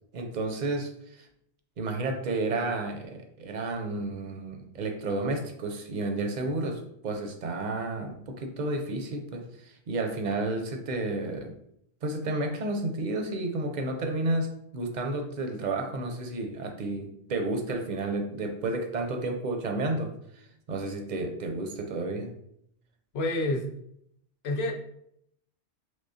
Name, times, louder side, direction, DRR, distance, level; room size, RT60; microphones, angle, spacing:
voice 1, 0.1-1.3 1.8-11.5 12.0-22.3, right 2 dB, 55° right, 5 dB, 0.5 m, -31 dB
voice 2, 23.1-23.7 24.4-24.7, left 2 dB, 70° left, 3 dB, 0.8 m, -28 dB
3.6 x 3.0 x 2.6 m, 0.72 s
omnidirectional pair, 1.2 m